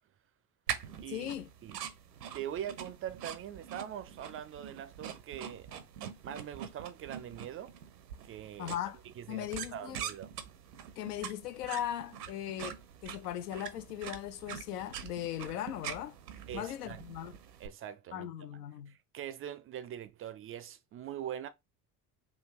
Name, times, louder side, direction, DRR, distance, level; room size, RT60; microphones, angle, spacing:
sound 1, 0.7-17.7, right 9 dB, 90° right, 0.6 m, -44 dB
voice 1, 1.1-1.5 8.6-9.0 9.3-10.0 11.0-16.2 16.5-17.3 18.1-18.9, left 11 dB, 80° left, 0.5 m, -38 dB
voice 2, 2.3-5.7 6.2-7.7 8.2-8.8 9.1-10.4 16.5-17.3 17.6-18.3 18.9-21.5, right 10 dB, 30° right, 0.4 m, -42 dB
3.6 x 2.3 x 2.9 m
hypercardioid pair, 60°, 47 cm